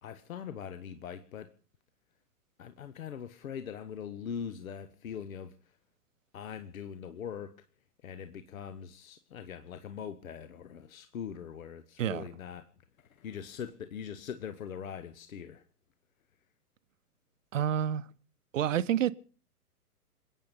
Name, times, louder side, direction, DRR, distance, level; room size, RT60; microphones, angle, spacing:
voice 1, 0.0-1.5 2.6-5.8 6.3-7.7 8.0-15.7, left 8 dB, 60° left, 1.3 m, -42 dB
voice 2, 17.5-18.1 18.5-19.1, right 10 dB, 55° right, 0.9 m, -28 dB
27.5 x 9.3 x 5.2 m
figure-of-eight pair, 115°, 47 cm